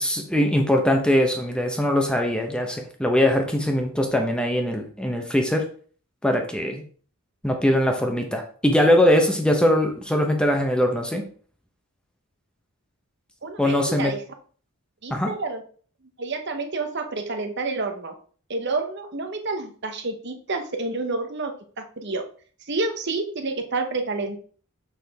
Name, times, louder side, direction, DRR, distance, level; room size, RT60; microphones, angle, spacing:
voice 1, 0.0-5.6 6.2-6.8 7.4-11.2 13.6-14.1 15.1-15.3, left 1 dB, 5° left, 3 dB, 0.9 m, -21 dB
voice 2, 13.4-14.2 15.0-15.6 16.2-18.1 18.5-22.2 22.7-24.4, right 3 dB, 50° right, 6 dB, 0.9 m, -29 dB
6.9 x 6.1 x 3.5 m, 0.43 s
head